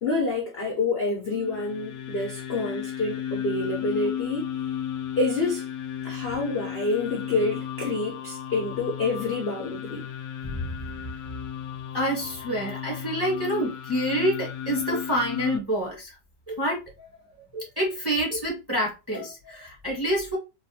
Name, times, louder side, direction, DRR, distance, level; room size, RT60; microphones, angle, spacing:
voice 1, 0.0-4.5 5.2-5.7 6.0-10.1, left 3 dB, 50° left, 0.7 m, -28 dB
sound 1, 1.3-15.6, left 9 dB, 80° left, 1.2 m, -34 dB
voice 2, 10.4-10.7 11.9-16.1 16.5-16.8 17.5-20.4, equal, 15° right, 0.9 m, -27 dB
3.1 x 2.5 x 2.7 m
omnidirectional pair, 1.9 m